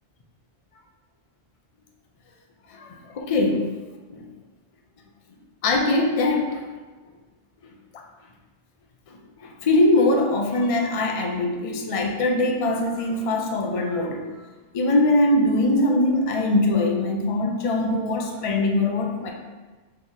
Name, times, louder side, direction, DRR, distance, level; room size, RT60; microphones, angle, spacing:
voice 1, 2.7-3.7 4.1-4.2 5.6-6.6 7.9-8.0 9.1-14.2 14.7-19.3, left 2 dB, 45° left, 2 dB, 0.5 m, -22 dB
4.1 x 3.1 x 3.9 m, 1.3 s
omnidirectional pair, 1.1 m